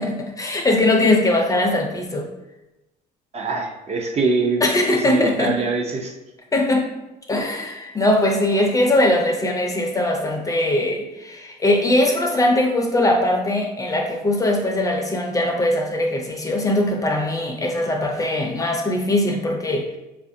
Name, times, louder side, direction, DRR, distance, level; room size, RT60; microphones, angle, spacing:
voice 1, 0.0-2.3 4.6-5.5 6.5-6.9 7.3-19.9, left 1 dB, 20° left, 2 dB, 0.5 m, -20 dB
voice 2, 3.3-4.6 5.0-6.1, right 3 dB, 40° right, 2 dB, 0.5 m, -23 dB
4.1 x 2.4 x 2.6 m, 0.98 s
cardioid pair, 110°, 17 cm